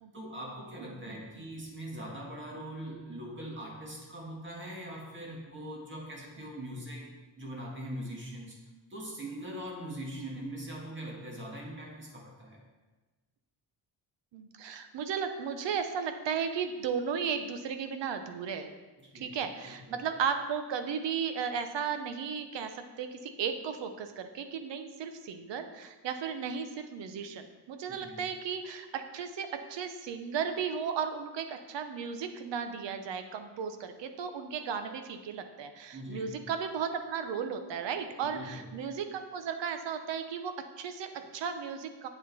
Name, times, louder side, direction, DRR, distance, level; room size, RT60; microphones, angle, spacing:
voice 1, 0.1-7.1 7.4-8.6 8.9-12.6 19.0-19.3 19.6-20.0 27.9-28.3 35.9-36.3 38.2-38.7, right 1 dB, 25° right, -2 dB, 1.9 m, -42 dB
voice 2, 0.8-1.2 10.2-10.4 14.3-18.7 19.1-42.1, right 6 dB, 85° right, 7 dB, 0.9 m, -35 dB
8.5 x 7.8 x 4.1 m, 1.2 s
wide cardioid pair, 175°, 42 cm